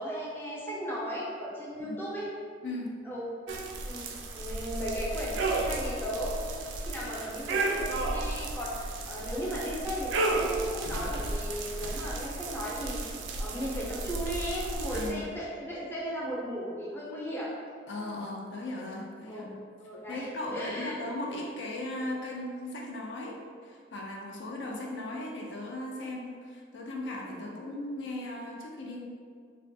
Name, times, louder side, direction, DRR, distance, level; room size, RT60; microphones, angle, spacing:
voice 1, 0.0-2.3 3.0-3.2 3.6-4.0 4.3-17.5 19.3-19.5 19.8-20.9, equal, 10° left, -6 dB, 0.5 m, -36 dB
voice 2, 2.6-3.0 14.9-15.3 17.9-19.6 20.1-23.4 23.6-29.1, left 1 dB, 70° left, -1 dB, 0.4 m, -37 dB
sound 1, 3.5-15.1, right 2 dB, 85° right, 0.3 m, -33 dB
3.3 x 2.2 x 2.6 m, 2.1 s
head